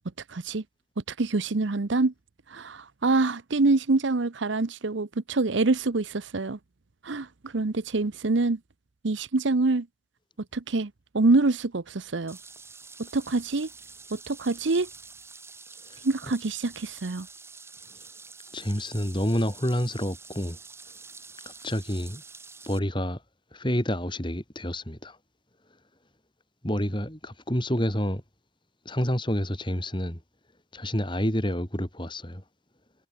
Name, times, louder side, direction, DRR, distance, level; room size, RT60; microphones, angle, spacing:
voice 1, 0.3-0.6 1.1-2.1 2.5-6.6 7.0-8.6 9.0-9.9 10.5-12.4 13.0-13.7 14.1-14.9 16.0-17.3, right 3 dB, 70° right, 0.8 m, -25 dB
sound 1, 12.3-22.8, right 4 dB, 15° right, 5.2 m, -47 dB
voice 2, 18.5-20.6 21.4-22.2 22.7-23.2 23.5-25.2 26.6-28.2 28.8-30.2 30.7-32.4, equal, 25° left, 5.0 m, -28 dB
head